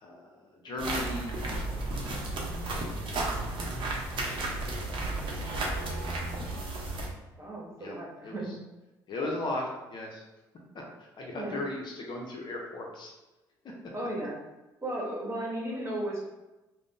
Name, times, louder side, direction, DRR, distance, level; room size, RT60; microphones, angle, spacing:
voice 1, 0.0-1.8 3.5-6.0 6.4-6.9 7.8-8.0 8.2-8.4 9.1-10.2 11.0-13.1, left 2 dB, 50° left, 0 dB, 0.7 m, -38 dB
sound 1, 0.8-7.1, right 2 dB, 55° right, 0.7 m, -33 dB
voice 2, 7.4-8.5 11.3-11.6 13.9-14.4 14.8-16.3, right 1 dB, 25° right, -4 dB, 1.1 m, -35 dB
2.5 x 2.1 x 3.6 m, 1.0 s
hypercardioid pair, 55°, 10 cm